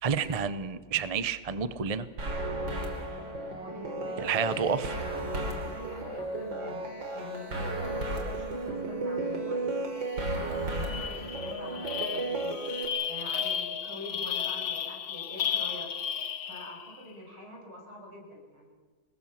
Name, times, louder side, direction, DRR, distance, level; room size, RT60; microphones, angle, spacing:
voice 1, 0.0-2.1 4.2-5.0, right 6 dB, 35° right, 13 dB, 0.6 m, -29 dB
sound 1, 2.2-12.9, right 2 dB, 65° right, 4.1 m, -34 dB
voice 2, 3.5-4.6 5.4-9.8 10.2-12.5 13.1-15.9 16.4-18.7, equal, 80° right, 0 dB, 7.8 m, -45 dB
sound 2, 10.1-10.2 10.5-17.0, left 8 dB, 50° left, 1.4 m, -34 dB
27.5 x 20.5 x 7.4 m, 1.4 s
omnidirectional pair, 2.2 m